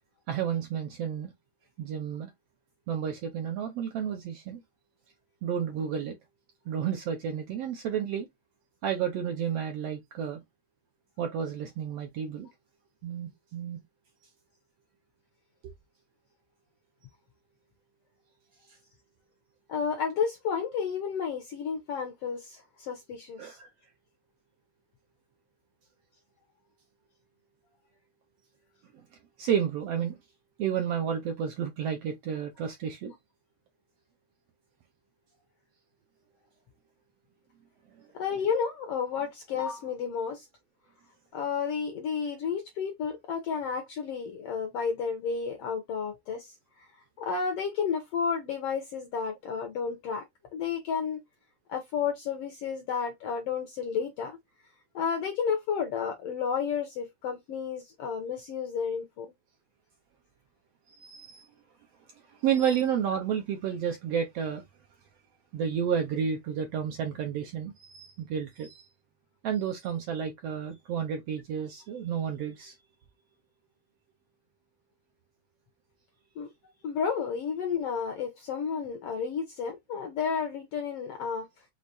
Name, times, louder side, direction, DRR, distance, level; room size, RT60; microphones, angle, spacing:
voice 1, 0.3-1.3 1.8-2.3 2.9-4.6 5.4-6.2 6.7-8.3 8.8-10.4 11.2-12.5 13.0-13.8 23.4-23.7 29.4-30.2 30.6-33.1 60.9-61.5 62.4-64.6 65.5-68.9 69.4-72.7, right 8 dB, 70° right, 1.6 m, -31 dB
voice 2, 19.7-23.6 38.1-40.5 41.3-46.9 47.2-50.2 50.5-51.2 51.7-54.4 54.9-59.3 76.4-76.5 76.8-81.5, left 6 dB, 70° left, 1.4 m, -31 dB
6.4 x 2.9 x 2.7 m
omnidirectional pair, 3.6 m